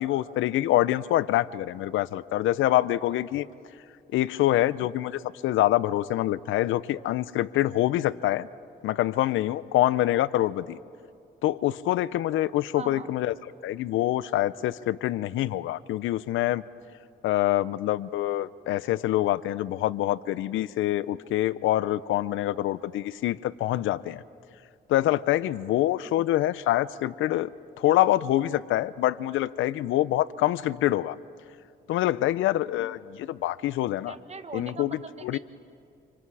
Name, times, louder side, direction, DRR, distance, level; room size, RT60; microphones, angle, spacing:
voice 1, 0.0-3.5 4.1-8.5 8.8-10.8 11.4-13.3 13.6-16.6 17.2-24.2 24.9-27.5 27.8-31.2 31.9-34.2 34.5-35.4, left 14 dB, 85° left, 18 dB, 0.6 m, -25 dB
voice 2, 12.7-13.1 26.0-26.2 34.1-35.4, right 4 dB, 35° right, 9 dB, 1.5 m, -41 dB
29.5 x 27.5 x 4.8 m, 2.4 s
cardioid pair, 90°, 20 cm